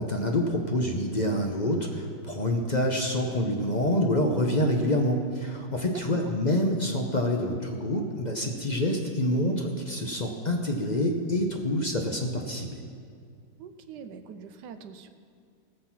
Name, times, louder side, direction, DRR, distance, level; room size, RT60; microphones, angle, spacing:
voice 1, 0.0-12.8, left 1 dB, 35° left, 2 dB, 0.7 m, -27 dB
voice 2, 5.9-6.3 13.6-15.1, right 6 dB, 85° right, 8 dB, 1.3 m, -43 dB
17.5 x 6.7 x 5.9 m, 2.2 s
omnidirectional pair, 1.8 m